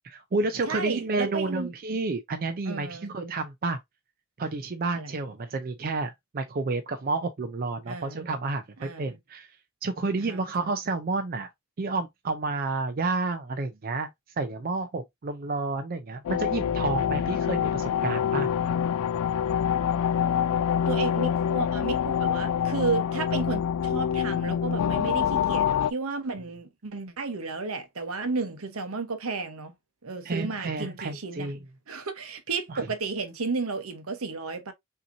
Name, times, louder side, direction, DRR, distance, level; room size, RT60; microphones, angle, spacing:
voice 1, 0.0-3.8 4.4-9.5 9.8-11.5 11.8-14.1 14.4-18.5 30.2-31.6 32.7-32.8, right 3 dB, 40° right, 0.5 m, -30 dB
voice 2, 0.7-1.7 2.7-3.1 5.0-5.2 7.9-8.2 8.8-9.2 10.2-10.4 20.8-29.7 30.0-31.5 31.9-34.7, right 4 dB, 70° right, 0.9 m, -33 dB
sound 1, 16.2-25.9, left 8 dB, 70° left, 0.3 m, -26 dB
5.6 x 2.8 x 2.6 m
head